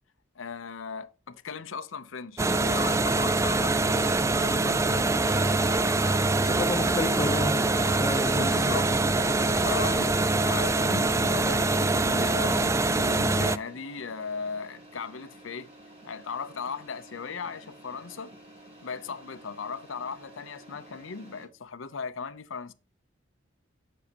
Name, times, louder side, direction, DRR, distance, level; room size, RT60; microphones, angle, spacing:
voice 1, 0.4-5.1 8.3-8.9 9.2-15.7 16.0-18.3 18.8-22.7, left 5 dB, 85° left, 0.7 m, -37 dB
sound 1, 2.4-13.6, right 2 dB, 15° right, 0.3 m, -24 dB
sound 2, 4.9-21.5, right 1 dB, 35° right, 3.9 m, -51 dB
voice 2, 6.3-8.8, left 2 dB, 20° left, 0.7 m, -32 dB
8.4 x 6.9 x 2.9 m
head